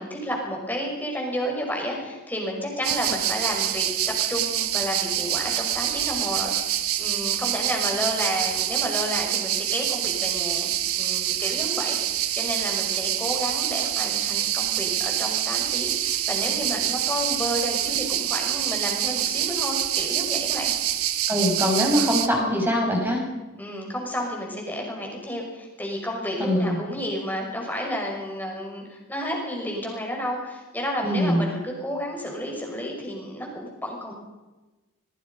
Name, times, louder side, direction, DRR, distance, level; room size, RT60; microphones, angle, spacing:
voice 1, 0.0-10.7 11.0-20.7 23.6-34.1, equal, 10° left, 0 dB, 5.9 m, -31 dB
sound 1, 2.8-22.3, right 12 dB, 85° right, 1.3 m, -26 dB
voice 2, 21.3-23.2 26.4-26.7 31.0-31.4, equal, 10° right, 0 dB, 6.1 m, -22 dB
25.5 x 22.0 x 5.4 m, 1.1 s
head